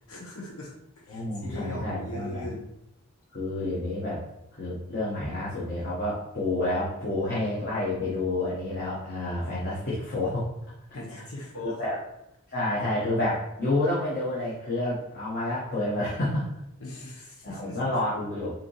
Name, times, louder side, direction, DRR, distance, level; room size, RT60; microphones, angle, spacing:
voice 1, 0.1-2.6 10.9-11.8 16.8-17.8, left 1 dB, 80° left, -1 dB, 1.2 m, -39 dB
voice 2, 1.1-2.5 3.3-4.2 4.5-10.5 11.8-12.0 12.5-16.5 17.4-18.5, left 1 dB, 45° left, -7 dB, 1.0 m, -29 dB
4.9 x 2.9 x 3.2 m, 0.84 s
head